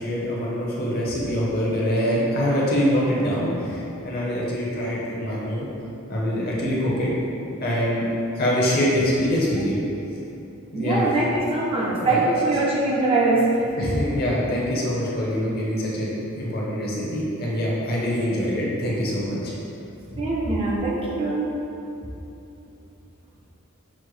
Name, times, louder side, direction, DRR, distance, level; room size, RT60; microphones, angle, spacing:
voice 1, 0.0-5.7 6.1-7.1 7.6-8.0 8.4-9.8 10.7-11.0 12.0-12.2 13.8-19.5 20.1-20.3, equal, 45° left, -5 dB, 0.7 m, -24 dB
voice 2, 10.7-13.7 20.2-21.5, right 2 dB, 25° right, -5 dB, 0.5 m, -22 dB
6.1 x 2.1 x 3.1 m, 2.8 s
head